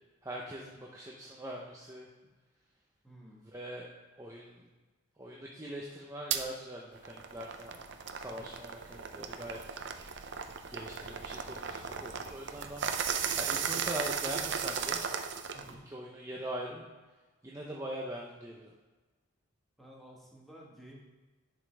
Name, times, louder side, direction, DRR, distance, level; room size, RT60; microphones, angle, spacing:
voice 1, 0.2-2.1 3.4-3.9 4.2-4.6 5.2-7.8 8.1-9.8 10.7-12.9 13.3-15.0 15.7-16.9 17.4-18.7, right 1 dB, 15° right, -2 dB, 0.6 m, -42 dB
voice 2, 3.0-3.5 8.3-8.6 15.5-15.9 19.8-21.0, equal, ahead, -4 dB, 1.4 m, -53 dB
sound 1, 6.3-6.4 6.9-15.7, right 7 dB, 55° right, 0.5 m, -36 dB
11.0 x 5.3 x 3.3 m, 1.2 s
head